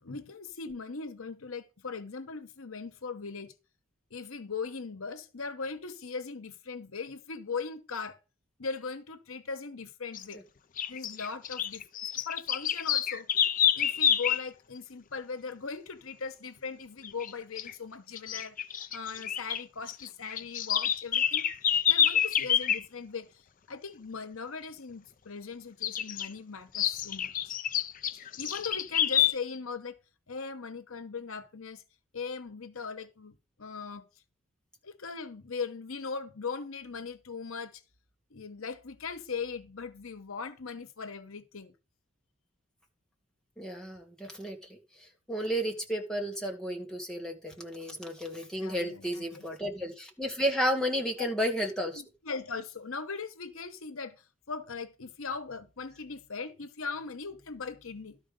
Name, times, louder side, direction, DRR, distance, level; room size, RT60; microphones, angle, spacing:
voice 1, 0.0-3.5 4.1-8.2 8.6-10.4 10.9-11.9 12.2-13.3 13.8-18.6 18.9-21.5 21.9-27.6 28.1-30.0 30.3-31.8 32.1-34.1 34.8-37.8 38.3-41.7 48.6-49.4 51.2-51.3 51.9-58.2, left 5 dB, 85° left, 1.0 m, -39 dB
sound 1, 10.1-10.3 10.8-14.5 17.0-17.3 17.6-17.7 18.2-19.6 19.9-22.8 25.8-26.3 26.7-29.3, left 9 dB, 40° left, 0.5 m, -28 dB
voice 2, 43.6-52.0, equal, 5° left, 1.6 m, -32 dB
12.5 x 4.8 x 5.2 m
head